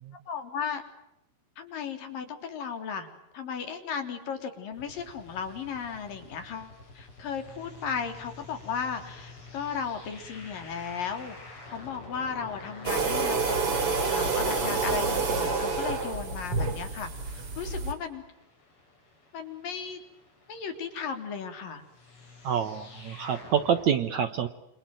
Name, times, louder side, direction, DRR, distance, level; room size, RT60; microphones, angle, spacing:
voice 1, 0.3-0.8 1.6-3.1 3.3-11.4 11.7-18.2 19.3-20.0 20.5-21.8, left 6 dB, 55° left, 6 dB, 5.0 m, -35 dB
sound 1, 4.7-23.9, left 3 dB, 30° left, 7.2 m, -49 dB
sound 2, 12.9-17.9, right 4 dB, 35° right, 4.1 m, -28 dB
voice 2, 22.4-24.5, right 8 dB, 65° right, 10 dB, 1.9 m, -27 dB
28.5 x 27.0 x 7.7 m, 0.85 s
omnidirectional pair, 4.8 m